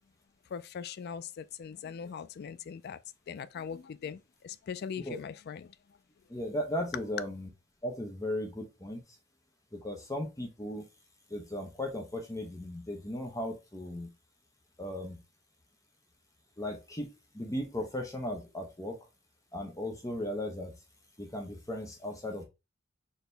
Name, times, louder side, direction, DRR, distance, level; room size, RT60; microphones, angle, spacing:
voice 1, 0.5-3.0 3.3-5.7, left 7 dB, 50° left, 0.3 m, -41 dB
voice 2, 6.3-7.5 7.8-9.0 9.7-10.8 11.3-14.1 14.8-15.2 16.6-17.1 17.3-18.9 19.5-20.7 21.2-22.4, left 1 dB, 15° left, 0.9 m, -36 dB
4.3 x 2.8 x 3.3 m
head